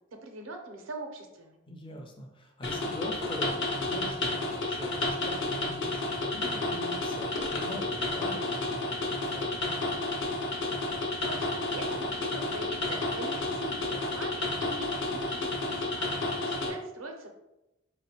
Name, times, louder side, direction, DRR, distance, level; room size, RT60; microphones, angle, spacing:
voice 1, 0.2-1.6 10.9-17.3, right 2 dB, 75° right, 3 dB, 0.5 m, -42 dB
voice 2, 1.7-9.9, left 1 dB, 25° left, 2 dB, 0.5 m, -42 dB
sound 1, 2.6-16.7, left 2 dB, 65° left, 0.7 m, -31 dB
4.4 x 2.0 x 2.8 m, 0.93 s
head